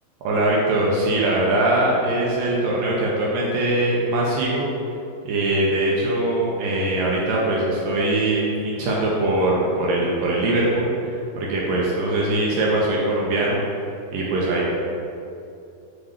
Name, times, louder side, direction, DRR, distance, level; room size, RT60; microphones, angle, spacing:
voice 1, 0.2-4.7 5.2-13.6 14.1-14.7, right 1 dB, 75° right, -4 dB, 2.1 m, -22 dB
7.5 x 3.8 x 6.6 m, 2.7 s
omnidirectional pair, 5.1 m